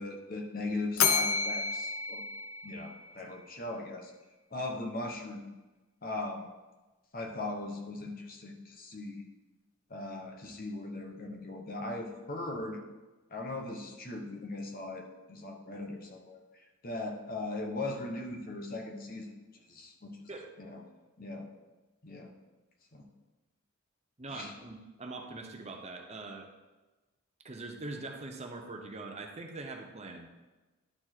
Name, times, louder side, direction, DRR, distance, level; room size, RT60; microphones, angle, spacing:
voice 1, 0.0-2.2 2.6-4.1 4.5-5.5 6.0-6.5 7.1-9.2 9.9-12.8 13.3-19.3 19.7-20.1 20.6-20.8 21.2-21.5 22.0-22.3 22.9-23.1 24.3-24.5, left 2 dB, 40° left, 2 dB, 1.0 m, -39 dB
Bell, 1.0-3.3, left 5 dB, 75° left, 0.7 m, -30 dB
voice 2, 24.2-26.5 27.4-30.3, right 2 dB, 30° right, 3 dB, 0.8 m, -42 dB
11.0 x 4.4 x 4.4 m, 1.2 s
head